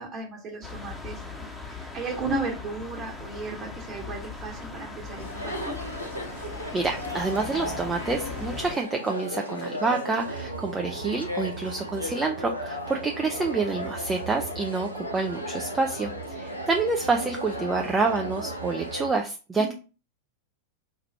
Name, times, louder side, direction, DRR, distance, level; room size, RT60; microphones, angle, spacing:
voice 1, 0.0-5.8 19.6-19.7, right 3 dB, 30° right, 1 dB, 1.4 m, -35 dB
sound 1, 0.6-8.8, left 4 dB, ahead, 0.9 m, -39 dB
Chatter, 5.1-19.2, equal, 90° left, 0.6 m, -36 dB
voice 2, 6.7-19.7, right 3 dB, 15° right, 2 dB, 0.5 m, -28 dB
sound 2, 10.2-19.1, right 6 dB, 70° right, 0.5 m, -41 dB
4.6 x 2.4 x 4.2 m, 0.34 s
figure-of-eight pair, 90°, 0 cm